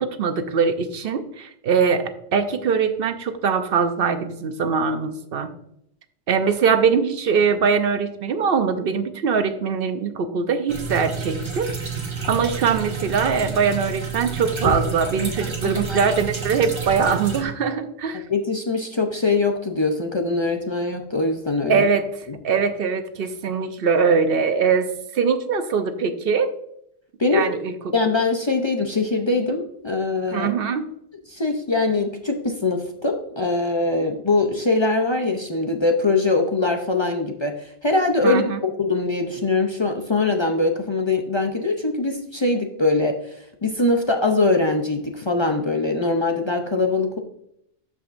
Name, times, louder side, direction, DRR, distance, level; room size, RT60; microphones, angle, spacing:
voice 1, 0.0-2.0 2.3-5.5 6.3-11.7 12.3-18.2 21.7-22.1 22.4-26.5 27.3-27.9 30.3-30.9 38.2-38.6, right 6 dB, 65° right, 9 dB, 0.8 m, -22 dB
sound 1, 10.7-17.4, right 5 dB, 30° right, 1.0 m, -29 dB
voice 2, 15.4-16.0 16.5-16.6 18.3-21.9 27.2-27.5 27.9-30.5 31.3-47.2, left 3 dB, 35° left, 3 dB, 0.6 m, -22 dB
12.5 x 5.0 x 2.5 m, 0.75 s
omnidirectional pair, 1.1 m